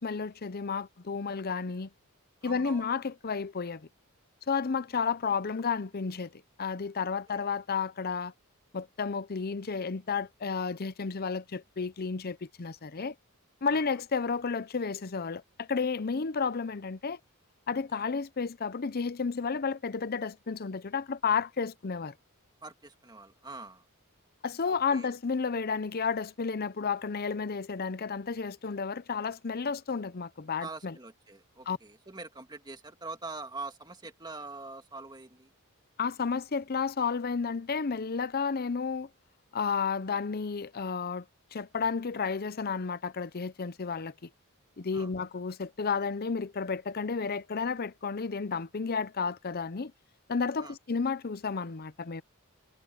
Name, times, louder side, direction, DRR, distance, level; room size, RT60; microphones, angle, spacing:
voice 1, 0.0-1.9 2.4-3.9 4.5-8.3 8.7-13.1 13.6-17.2 17.7-22.1 24.4-30.9 31.7-31.8 36.0-39.1 39.5-41.2 41.5-44.3 44.8-49.9 50.3-52.2, left 5 dB, 45° left, 0.6 m, -32 dB
voice 2, 2.4-3.0 7.3-7.5 13.6-13.9 17.9-18.0 22.6-23.9 24.7-25.1 30.6-35.5 44.9-45.1 50.6-50.8, right 3 dB, 20° right, 2.2 m, -44 dB
head